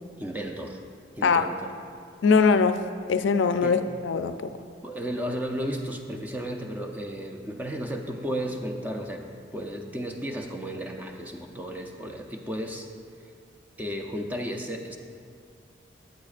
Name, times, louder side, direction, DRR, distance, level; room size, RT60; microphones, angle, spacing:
voice 1, 0.2-0.8 1.2-1.7 3.6-3.8 4.8-12.9 13.8-15.0, equal, 10° right, 3 dB, 0.5 m, -34 dB
voice 2, 2.2-2.8 3.1-4.5, left 5 dB, 80° left, 10 dB, 0.4 m, -21 dB
13.5 x 8.8 x 2.5 m, 2.3 s
head